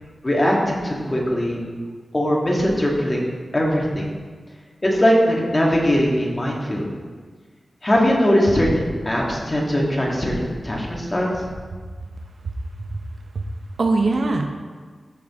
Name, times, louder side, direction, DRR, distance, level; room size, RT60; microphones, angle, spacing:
voice 1, 0.2-1.6 2.1-3.2 3.5-4.0 4.8-6.9 7.8-11.5, equal, 25° left, -3 dB, 1.8 m, -20 dB
voice 2, 12.4-13.0 13.3-13.4 13.8-14.5, right 3 dB, 60° right, 3 dB, 0.7 m, -22 dB
14.0 x 5.0 x 3.6 m, 1.5 s
wide cardioid pair, 105°, 0 cm